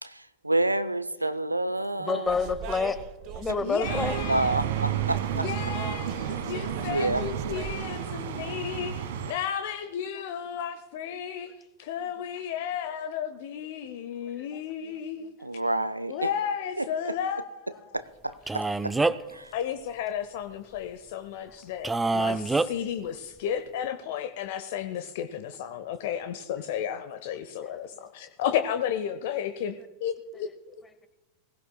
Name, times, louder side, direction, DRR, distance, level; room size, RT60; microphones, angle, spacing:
voice 1, 0.0-2.5 4.3-5.5 6.8-7.2 15.4-16.3 16.8-16.9 17.9-19.0 19.3-19.5, right 2 dB, 85° right, 14 dB, 0.5 m, -29 dB
voice 2, 2.0-3.0 3.3-4.1, left 4 dB, 15° left, 11 dB, 1.1 m, -28 dB
sound 1, 2.2-7.7, right 6 dB, 40° right, 0.8 m, -41 dB
voice 3, 3.6-4.6 5.3-11.5 11.8-15.3 16.1-18.0 19.5-30.5, left 9 dB, 50° left, 10 dB, 0.7 m, -33 dB
sound 2, 3.8-9.3, right 9 dB, 55° right, 1.3 m, -31 dB
Male speech man speaking, 18.5-19.4 21.8-22.7, right 3 dB, 10° right, 0.4 m, -25 dB
19.5 x 16.5 x 2.2 m, 1.1 s
figure-of-eight pair, 90°, 0 cm